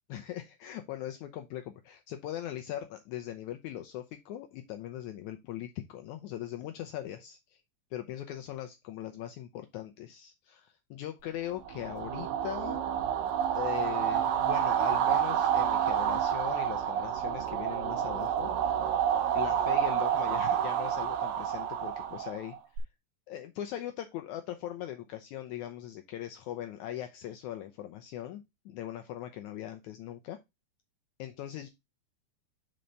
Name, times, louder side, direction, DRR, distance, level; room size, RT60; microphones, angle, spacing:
voice 1, 0.1-7.6 7.9-12.9 13.5-18.5 19.3-22.8 23.3-30.4 31.2-31.7, left 12 dB, 85° left, 7 dB, 1.7 m, -40 dB
sound 1, 11.7-22.8, right 9 dB, 80° right, 2.5 m, -29 dB
5.3 x 4.4 x 5.1 m, 0.21 s
omnidirectional pair, 4.0 m